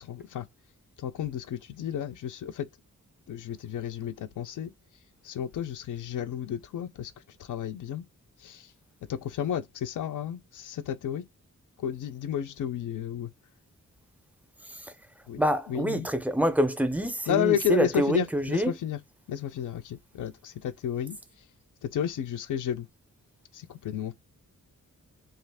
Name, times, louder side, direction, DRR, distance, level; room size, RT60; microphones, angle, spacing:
voice 1, 0.1-0.4 1.0-2.7 3.3-4.7 5.3-7.1 7.5-8.0 8.4-8.6 9.1-11.2 11.8-13.3 15.3-15.4 15.7-16.1 17.3-19.0 19.3-21.2 21.8-22.9 23.5-24.1, left 9 dB, 75° left, 0.5 m, -32 dB
voice 2, 15.4-18.8, equal, 5° right, 0.4 m, -26 dB
2.8 x 2.4 x 3.3 m
wide cardioid pair, 155°, 31 cm